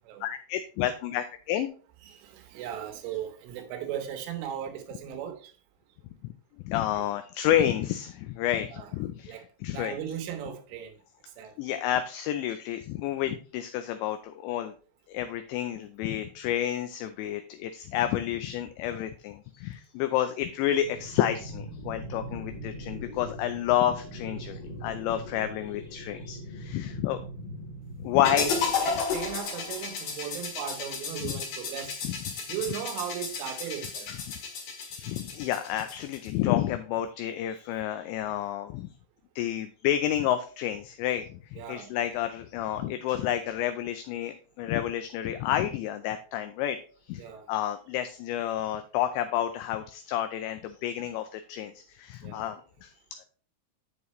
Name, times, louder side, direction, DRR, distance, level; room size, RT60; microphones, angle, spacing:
voice 1, 0.2-1.7 6.7-10.0 11.6-14.7 15.1-27.2 28.0-28.5 31.2-31.3 32.0-32.4 34.1-34.2 34.8-38.9 39.4-46.8 47.0-52.9 53.2-53.3, left 11 dB, 85° left, 2.6 m, -30 dB
voice 2, 2.1-5.5 8.7-8.9 9.3-9.5 9.7-11.0 11.4-11.5 28.2-32.0 32.5-34.1 41.6-41.9 47.2-47.5 52.2-52.5, right 9 dB, 80° right, 3.5 m, -37 dB
sound 1, 20.7-28.7, equal, 35° left, 2.0 m, -41 dB
sound 2, 28.2-36.3, left 5 dB, 60° left, 2.5 m, -33 dB
8.3 x 7.2 x 3.1 m
omnidirectional pair, 5.6 m